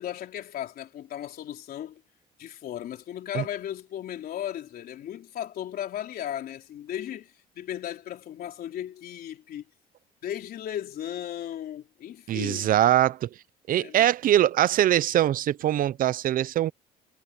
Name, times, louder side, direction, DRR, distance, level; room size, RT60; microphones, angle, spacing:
voice 1, 0.0-2.0 2.4-9.7 10.2-12.7 13.7-14.1, left 11 dB, 60° left, 3.8 m, -36 dB
voice 2, 12.3-13.3 13.7-16.7, right 12 dB, 55° right, 0.6 m, -22 dB
cardioid pair, 110°, 17 cm